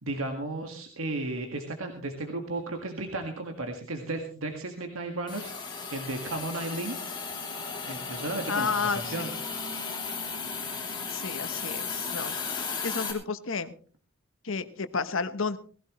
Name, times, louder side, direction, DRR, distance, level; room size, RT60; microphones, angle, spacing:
voice 1, 0.0-7.0 7.8-9.3, right 2 dB, 85° right, 4 dB, 1.9 m, -34 dB
Hiss, 5.3-13.1, left 5 dB, 20° left, 3.0 m, -35 dB
voice 2, 8.5-9.2 11.1-12.3 12.8-13.7 14.4-15.6, left 5 dB, 75° left, 12 dB, 1.1 m, -31 dB
18.5 x 16.0 x 3.1 m, 0.42 s
head